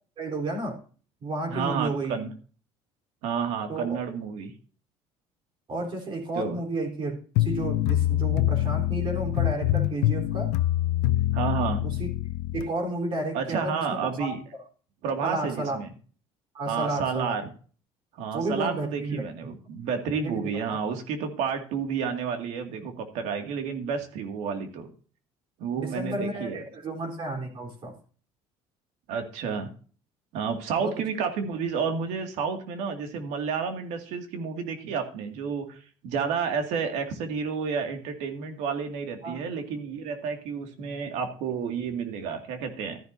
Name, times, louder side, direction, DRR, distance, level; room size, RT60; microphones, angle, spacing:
voice 1, 0.2-0.8 1.2-2.2 3.7-4.0 5.7-10.5 11.8-12.1 12.5-14.3 15.2-15.8 16.5-17.4 18.3-19.6 20.2-20.8 25.8-27.9 30.8-30.9 39.2-39.4, right 2 dB, 45° right, 2 dB, 3.9 m, -32 dB
voice 2, 1.5-2.3 3.2-4.5 6.3-6.6 11.3-11.8 13.3-14.4 15.0-15.9 16.7-17.5 18.1-24.9 25.6-26.6 29.1-29.7 30.3-43.0, right 6 dB, 80° right, 5 dB, 2.2 m, -30 dB
sound 1, 7.4-12.7, left 15 dB, 85° left, 0.6 m, -25 dB
13.5 x 10.5 x 2.7 m, 0.40 s
cardioid pair, 110°, 12 cm